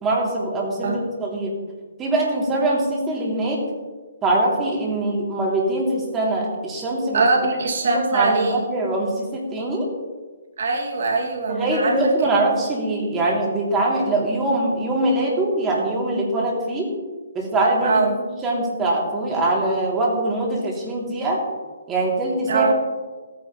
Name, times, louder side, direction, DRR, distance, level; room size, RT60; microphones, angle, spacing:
voice 1, 0.0-1.5 2.0-3.6 4.2-7.2 7.5-7.6 7.8-9.9 11.5-16.9 17.3-21.4 21.9-22.7, right 2 dB, 15° right, -3 dB, 3.1 m, -23 dB
voice 2, 7.1-8.6 10.6-11.9 17.8-18.1 22.5-22.7, right 3 dB, 55° right, 1 dB, 2.5 m, -21 dB
18.0 x 9.6 x 3.2 m, 1.4 s
figure-of-eight pair, 135°, 0 cm